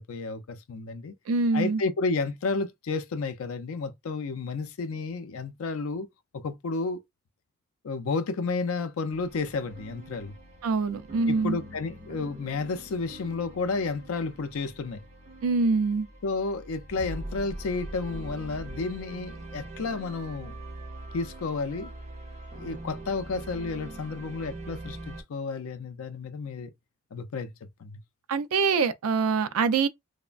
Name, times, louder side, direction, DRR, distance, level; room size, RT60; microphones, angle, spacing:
voice 1, 0.0-1.1 1.5-6.1 6.3-7.0 7.8-10.3 11.3-15.0 16.2-20.6 21.1-21.9 22.6-26.7 27.1-27.5 27.8-28.0, left 4 dB, 80° left, 0.4 m, -31 dB
voice 2, 1.3-1.8 10.6-11.6 15.4-16.1 28.3-29.9, right 4 dB, 90° right, 0.4 m, -24 dB
sound 1, 9.1-25.2, right 1 dB, 30° right, 0.6 m, -43 dB
3.1 x 2.1 x 2.4 m
head